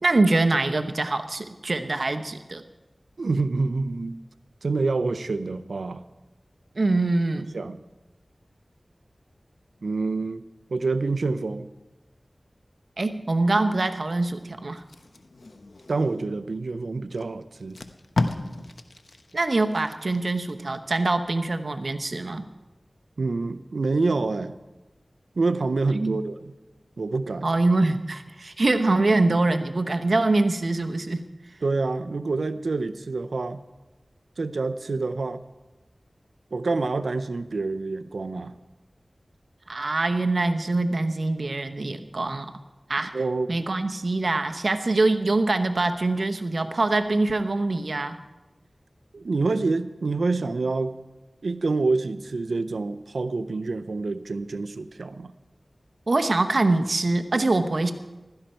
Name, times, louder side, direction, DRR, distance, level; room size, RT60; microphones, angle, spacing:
voice 1, 0.0-2.6 6.7-7.5 13.0-14.8 19.3-22.5 25.9-26.2 27.4-31.2 39.7-42.5 42.9-43.1 43.5-48.2 56.1-57.9, right 2 dB, 65° right, 8 dB, 0.9 m, -24 dB
voice 2, 3.2-4.2 4.6-6.1 7.5-7.8 9.8-11.7 15.9-17.8 23.2-24.6 25.4-26.4 27.0-27.5 31.6-33.6 34.4-35.4 36.5-38.5 43.1-43.5 49.1-50.9 51.4-55.3, right 3 dB, 90° right, 12 dB, 0.6 m, -27 dB
Packing tape duct tape, 14.8-16.4 17.1-17.2 17.6-20.5 21.0-21.2, left 2 dB, 75° left, 0.9 m, -33 dB
15.5 x 12.5 x 4.4 m, 1.1 s
wide cardioid pair, 50°, 0 cm